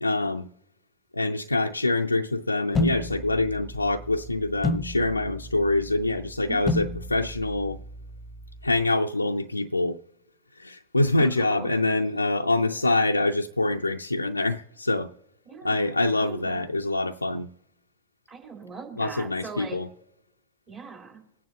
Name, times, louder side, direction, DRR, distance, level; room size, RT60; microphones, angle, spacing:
voice 1, 0.0-0.5 1.1-7.8 8.6-10.0 10.6-15.1 15.6-17.5 19.0-19.9, left 2 dB, 85° left, 0.4 m, -25 dB
sound 1, 2.7-8.8, left 2 dB, 10° left, 1.0 m, -32 dB
voice 2, 6.5-6.9 11.2-11.5 12.0-12.2 15.5-16.6 18.3-19.8 20.7-21.2, right 5 dB, 30° right, 3.7 m, -41 dB
22.5 x 9.4 x 2.8 m
figure-of-eight pair, 90°, 0 cm